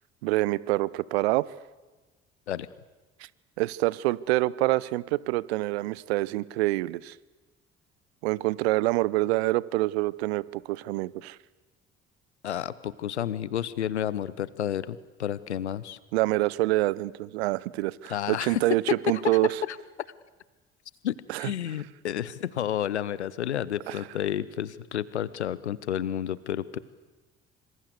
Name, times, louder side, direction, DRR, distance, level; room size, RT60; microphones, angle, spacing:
voice 1, 0.2-1.5 3.2-3.3 3.6-7.2 8.2-11.4 16.1-19.6 21.3-21.5 23.9-24.0, right 19 dB, 65° right, 22 dB, 0.8 m, -26 dB
voice 2, 12.4-16.0 18.1-18.6 19.7-19.8 21.0-26.8, left 10 dB, 80° left, 19 dB, 1.0 m, -31 dB
26.5 x 25.5 x 8.2 m, 1.2 s
figure-of-eight pair, 50°, 34 cm